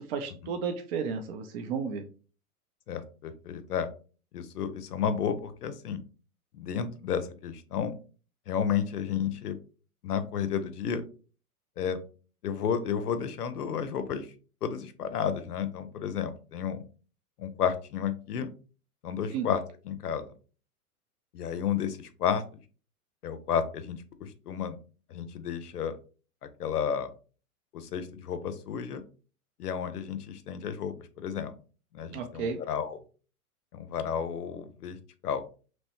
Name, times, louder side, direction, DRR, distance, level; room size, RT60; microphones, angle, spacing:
voice 1, 0.0-2.0 19.3-19.5 32.1-32.6, right 6 dB, 45° right, 5 dB, 0.4 m, -33 dB
voice 2, 2.9-3.9 4.3-6.0 6.5-7.9 8.5-9.6 10.0-11.0 11.8-12.0 12.4-14.3 14.6-16.8 17.4-18.5 19.0-20.3 21.3-22.4 23.2-24.8 25.1-26.0 26.6-27.1 27.7-29.0 29.6-31.5 31.9-33.0 33.7-35.0 35.2-35.4, left 7 dB, 90° left, 11 dB, 0.5 m, -32 dB
3.0 x 2.1 x 2.8 m, 0.37 s
hypercardioid pair, 105°, 45 cm